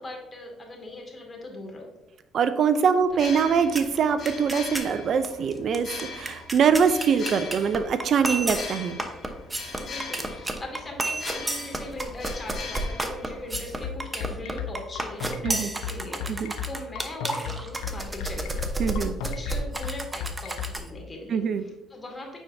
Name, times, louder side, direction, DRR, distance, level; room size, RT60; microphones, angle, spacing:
voice 1, 0.0-1.9 8.3-9.1 9.8-18.7 19.2-22.4, left 1 dB, 30° left, 1 dB, 2.1 m, -40 dB
voice 2, 2.3-9.0 15.4-15.7 16.3-16.5 18.8-19.2 21.3-21.7, right 6 dB, 60° right, 11 dB, 0.5 m, -23 dB
sound 1, 3.1-13.9, left 4 dB, 55° left, 2.1 m, -41 dB
sound 2, 3.8-4.0 4.3-4.9 5.2-5.3 5.5-20.9, right 2 dB, 20° right, 0.9 m, -32 dB
sound 3, 13.5-20.7, left 8 dB, 80° left, 0.7 m, -33 dB
9.2 x 4.5 x 2.7 m, 0.99 s
supercardioid pair, 65°, 0 cm